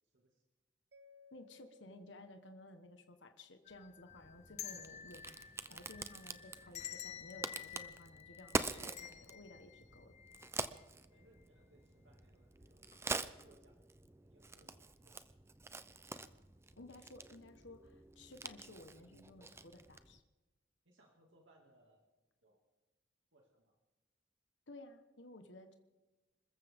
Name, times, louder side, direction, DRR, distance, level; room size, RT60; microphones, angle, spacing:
Mallet percussion, 0.9-3.9, left 5 dB, 60° right, 0.9 m, -65 dB
voice 1, 1.3-10.1 16.8-20.2 24.7-25.7, left 2 dB, 80° left, 6 dB, 1.3 m, -55 dB
sound 1, 3.6-10.8 11.2-11.3 12.2-12.5 12.8-13.0, left 10 dB, 35° left, 0.7 m, -51 dB
Crack, 4.1-20.2, right 3 dB, 15° right, 0.5 m, -46 dB
voice 2, 11.1-13.8 14.2-15.2 20.8-22.1 22.4-22.6 23.3-23.7, right 1 dB, 90° right, 0 dB, 2.4 m, -69 dB
26.5 x 14.5 x 3.6 m, 1.1 s
head